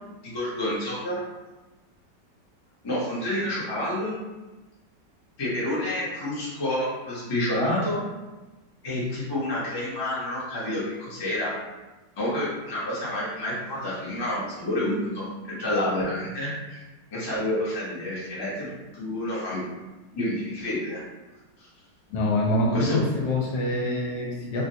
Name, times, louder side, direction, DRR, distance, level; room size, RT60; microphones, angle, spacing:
voice 1, 0.2-1.2 2.8-4.1 5.4-8.0 8.8-11.5 12.2-16.8 17.1-19.6 20.1-21.0 22.7-23.0, left 1 dB, 25° left, -7 dB, 0.5 m, -29 dB
voice 2, 22.1-24.6, left 1 dB, 75° left, -2 dB, 1.1 m, -25 dB
3.6 x 2.2 x 2.7 m, 1.1 s
omnidirectional pair, 1.9 m